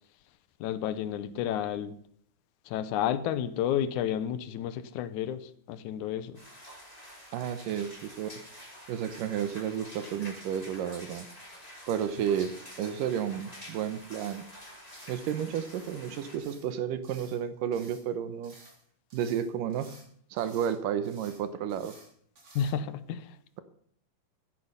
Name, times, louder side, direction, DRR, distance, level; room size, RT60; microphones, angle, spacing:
voice 1, 0.6-2.0 2.7-6.4 22.5-23.4, left 9 dB, 80° left, 12 dB, 1.8 m, -31 dB
sound 1, 6.3-16.4, equal, 10° left, 3.3 m, -48 dB
voice 2, 7.3-8.5 8.9-11.3 11.9-14.5 15.1-18.6 19.1-19.9 20.3-22.0, right 9 dB, 70° right, 12 dB, 2.4 m, -32 dB
sound 2, 13.7-13.8 14.2-14.5 14.9-15.3 15.6-16.0 16.4-16.7 17.0-17.4 17.7-18.1 18.4-18.8 19.1-20.1 20.4-20.8 21.0-21.4 21.7-22.1 22.4-22.7, right 2 dB, 35° right, 4.2 m, -55 dB
15.5 x 10.5 x 5.6 m, 0.63 s
omnidirectional pair, 4.4 m